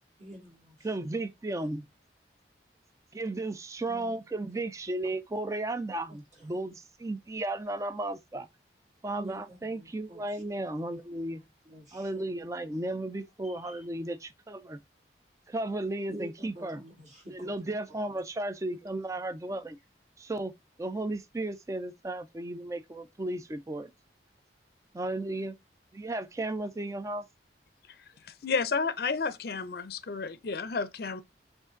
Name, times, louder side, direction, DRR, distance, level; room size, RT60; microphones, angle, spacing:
voice 1, 0.2-1.1 1.6-1.7 3.9-4.2 4.5-4.6 6.1-6.6 9.2-10.4 10.8-11.0 11.4-12.2 13.4-13.9 16.1-17.7 18.8-18.9, right 1 dB, 40° right, 1.8 m, -48 dB
voice 2, 0.8-1.8 3.1-8.5 9.0-11.4 11.9-14.8 15.5-16.8 17.3-19.8 20.2-20.5 20.8-23.9 24.9-25.5 25.9-27.2, right 2 dB, 15° right, 0.3 m, -34 dB
voice 3, 28.4-31.2, left 4 dB, 55° left, 0.5 m, -31 dB
4.9 x 2.5 x 3.7 m
head